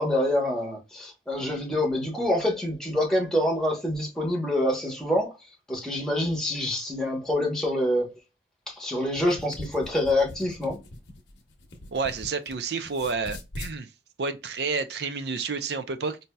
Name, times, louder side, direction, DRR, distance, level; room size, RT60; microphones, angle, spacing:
voice 1, 0.0-5.3 5.7-8.1 8.7-10.8, left 1 dB, 5° left, 1.0 m, -26 dB
sound 1, 9.0-12.5 12.8-13.8, left 1 dB, 85° left, 0.8 m, -41 dB
voice 2, 11.9-13.9 14.2-16.2, right 4 dB, 65° right, 0.5 m, -30 dB
4.3 x 2.6 x 2.2 m
head